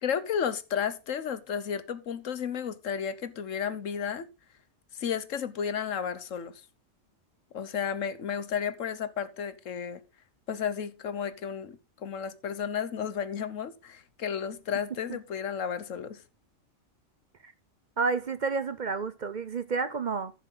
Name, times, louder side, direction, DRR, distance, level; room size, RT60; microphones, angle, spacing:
voice 1, 0.0-4.3 4.9-6.6 7.5-10.0 10.5-16.2, left 7 dB, 85° left, 1.4 m, -33 dB
voice 2, 18.0-20.3, right 4 dB, 45° right, 0.6 m, -30 dB
14.0 x 7.0 x 3.8 m
omnidirectional pair, 1.3 m